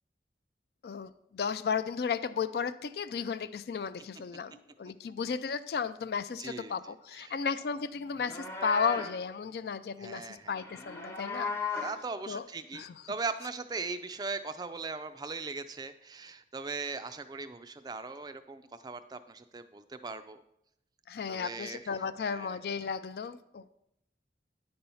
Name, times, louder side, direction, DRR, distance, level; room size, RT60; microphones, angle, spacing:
voice 1, 0.8-11.5 12.3-12.5 12.7-12.9 21.1-23.7, left 6 dB, 60° left, 14 dB, 0.3 m, -34 dB
voice 2, 6.4-7.3 10.0-10.6 11.8-20.4 21.3-21.9 22.2-22.6, right 4 dB, 25° right, 10 dB, 0.3 m, -39 dB
Livestock farm animals working animals, 8.1-9.2 10.5-12.0, left 4 dB, 15° left, 0.6 m, -37 dB
9.6 x 4.4 x 5.4 m, 0.79 s
head